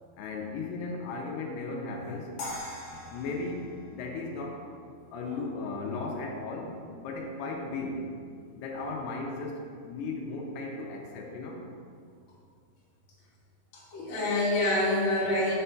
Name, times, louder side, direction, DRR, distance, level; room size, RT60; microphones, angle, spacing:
voice 1, 0.2-2.3 3.1-4.7 5.1-8.1 8.6-11.6, left 3 dB, 85° left, 0 dB, 2.7 m, -36 dB
sound 1, 2.4-5.5, left 1 dB, 70° left, 2.2 m, -42 dB
voice 2, 13.7-15.5, left 1 dB, 50° left, -7 dB, 2.4 m, -27 dB
6.9 x 3.4 x 5.7 m, 2.2 s
omnidirectional pair, 4.6 m